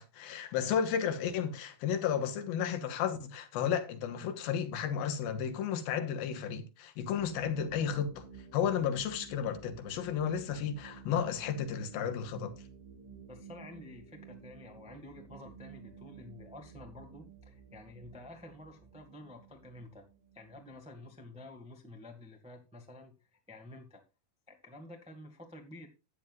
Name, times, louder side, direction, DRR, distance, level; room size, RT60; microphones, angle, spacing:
voice 1, 0.0-8.3 8.5-12.5, left 8 dB, 80° left, 3.0 m, -33 dB
sound 1, 7.1-21.5, right 5 dB, 45° right, 2.4 m, -53 dB
voice 2, 13.3-20.1 20.3-24.0 24.5-25.9, left 1 dB, 5° right, 0.7 m, -50 dB
13.5 x 9.4 x 2.5 m
omnidirectional pair, 4.3 m